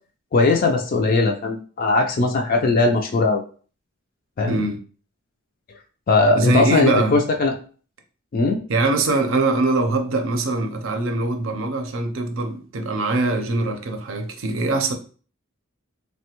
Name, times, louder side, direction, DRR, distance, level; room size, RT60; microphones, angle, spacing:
voice 1, 0.3-3.4 4.4-4.6 6.1-7.5 8.3-8.6, left 3 dB, 45° left, 0.3 m, -19 dB
voice 2, 4.5-4.8 6.4-7.2 8.7-14.9, right 2 dB, 75° right, 0.5 m, -22 dB
3.2 x 2.1 x 2.9 m
head